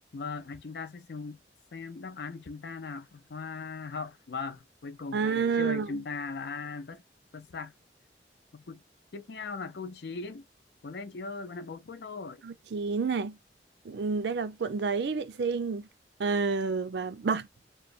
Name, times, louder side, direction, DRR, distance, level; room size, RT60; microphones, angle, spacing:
voice 1, 0.1-1.4 1.7-7.0 7.3-7.7 8.5-8.8 9.1-10.4 10.8-12.4, left 4 dB, 70° left, 0.5 m, -39 dB
voice 2, 5.1-6.0 12.4-13.4 13.8-15.9 16.2-17.5, right 5 dB, 75° right, 0.4 m, -29 dB
3.0 x 2.0 x 2.4 m
head